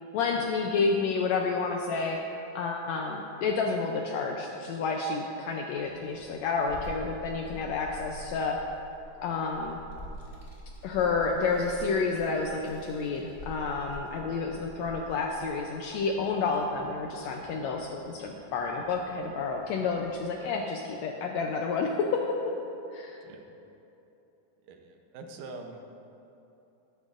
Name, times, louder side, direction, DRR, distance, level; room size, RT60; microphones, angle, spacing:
voice 1, 0.1-2.2 2.5-8.6 9.2-9.8 10.8-22.5 22.9-23.2, left 4 dB, 80° left, 2 dB, 1.6 m, -30 dB
Child speech kid speaking, 5.8-20.2, right 1 dB, 15° left, 1.1 m, -48 dB
voice 2, 24.7-25.8, right 3 dB, 80° right, 4 dB, 2.3 m, -44 dB
12.5 x 11.5 x 2.5 m, 2.9 s
omnidirectional pair, 3.6 m